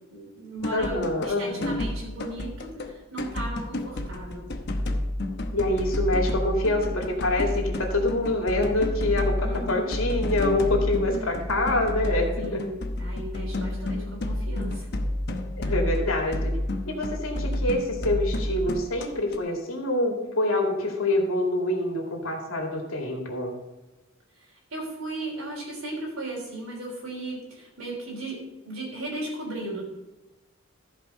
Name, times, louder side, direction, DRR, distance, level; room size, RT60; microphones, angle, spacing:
voice 1, 0.1-4.5 9.4-9.9 12.4-14.9 15.6-15.7 24.4-29.8, right 1 dB, 80° right, -4 dB, 3.6 m, -36 dB
sound 1, 0.6-1.4 1.6-2.9 3.2-19.4, left 1 dB, 55° left, 0.9 m, -30 dB
voice 2, 0.7-1.8 5.5-12.6 15.6-16.5 16.9-23.5, left 1 dB, 85° left, 0 dB, 2.4 m, -26 dB
14.0 x 5.2 x 5.5 m, 1.1 s
head